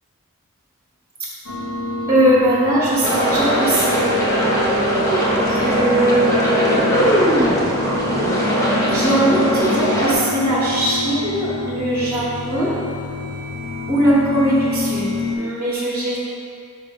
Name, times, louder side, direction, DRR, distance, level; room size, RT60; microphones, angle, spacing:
sound 1, 1.5-15.4, left 3 dB, 70° left, 0.7 m, -28 dB
voice 1, 2.1-4.2 5.5-7.6 8.9-12.8 13.9-16.2, right 1 dB, 10° right, -8 dB, 0.8 m, -20 dB
sound 2, 3.0-10.1, right 1 dB, 15° left, 0.9 m, -19 dB
5.4 x 5.0 x 3.6 m, 2.5 s
head